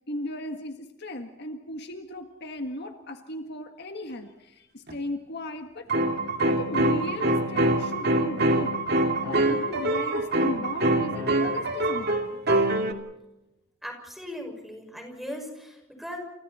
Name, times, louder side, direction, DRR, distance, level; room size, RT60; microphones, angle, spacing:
voice 1, 0.1-5.9 6.4-8.8 9.2-12.4, left 1 dB, 55° left, 5 dB, 1.7 m, -36 dB
sound 1, 4.9-5.0 5.9-12.9, right 1 dB, 50° right, 2.5 m, -24 dB
voice 2, 13.8-16.2, equal, ahead, 3 dB, 6.1 m, -38 dB
29.5 x 29.0 x 4.3 m, 0.95 s
head